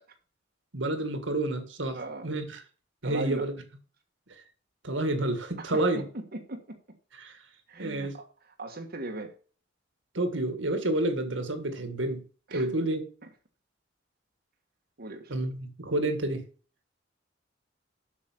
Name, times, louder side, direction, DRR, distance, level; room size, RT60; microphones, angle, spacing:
voice 1, 0.7-2.6 3.0-3.5 4.8-6.0 7.1-7.4 7.8-8.1 10.1-12.2 12.5-13.0 15.3-16.4, right 1 dB, 80° right, 1.9 m, -29 dB
voice 2, 1.9-2.3 3.0-3.5 5.6-7.0 7.7-8.1 8.6-9.3 12.5-12.7 15.0-15.3, right 2 dB, 55° right, 1.5 m, -38 dB
8.4 x 6.7 x 6.0 m
head